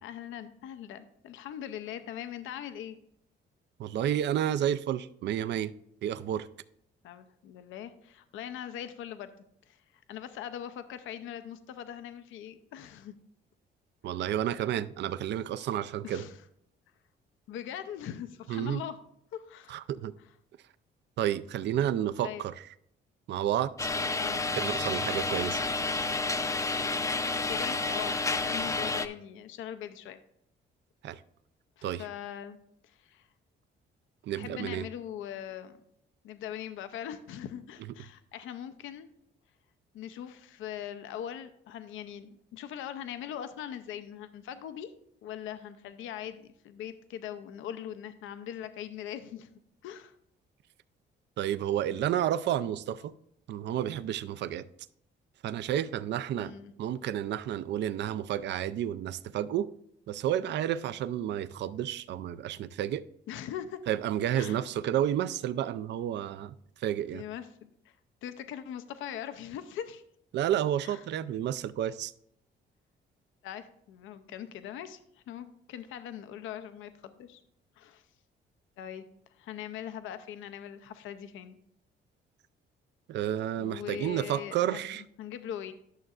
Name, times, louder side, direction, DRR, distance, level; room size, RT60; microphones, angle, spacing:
voice 1, 0.0-3.0 7.0-9.3 9.7-13.1 16.0-16.4 17.5-19.0 19.3-19.8 22.2-22.4 24.2-24.4 27.1-30.2 31.8-33.3 34.3-35.8 36.2-39.1 39.9-44.9 45.2-49.5 49.8-50.2 56.3-56.7 63.3-63.8 64.3-64.6 67.1-68.0 68.2-70.0 70.8-71.0 73.4-77.4 77.8-78.0 78.8-79.0 79.3-81.6 83.6-85.7, left 10 dB, 80° left, 0.5 m, -41 dB
voice 2, 3.8-5.7 6.0-6.5 14.0-16.2 18.5-18.8 19.7-20.1 21.2-22.7 23.3-23.9 24.6-25.6 31.0-31.2 31.8-32.1 34.2-34.8 51.4-53.1 53.5-54.7 55.4-56.5 56.8-59.7 60.1-63.0 63.9-67.2 70.3-72.1 83.1-85.0, right 11 dB, 60° right, 0.4 m, -31 dB
sound 1, 23.8-29.1, left 3 dB, 15° left, 0.5 m, -30 dB
11.5 x 6.5 x 2.4 m
cardioid pair, 90°, 20 cm